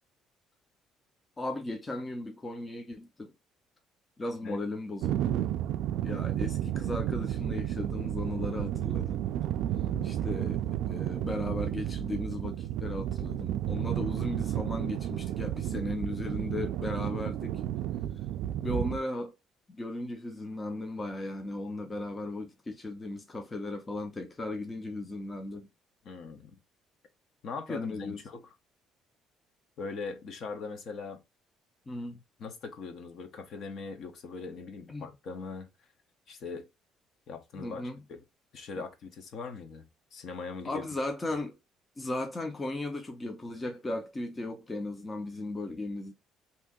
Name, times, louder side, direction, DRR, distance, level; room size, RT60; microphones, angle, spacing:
voice 1, 1.4-3.3 4.2-5.5 6.0-9.2 10.0-17.6 18.6-19.3 19.7-25.7 27.7-28.2 31.9-32.2 34.9-35.1 37.5-38.0 38.8-38.9 40.6-41.5 42.0-46.1, left 2 dB, 20° left, 0.6 m, -36 dB
sound 1, 5.0-19.0, right 12 dB, 80° right, 0.3 m, -32 dB
voice 2, 9.9-10.3 26.0-26.6 27.4-28.5 29.8-31.2 32.4-35.7 36.3-36.7 37.3-37.8 38.1-38.2 38.5-40.8, left 4 dB, 55° left, 0.9 m, -40 dB
2.9 x 2.7 x 3.6 m
cardioid pair, 130°, 0 cm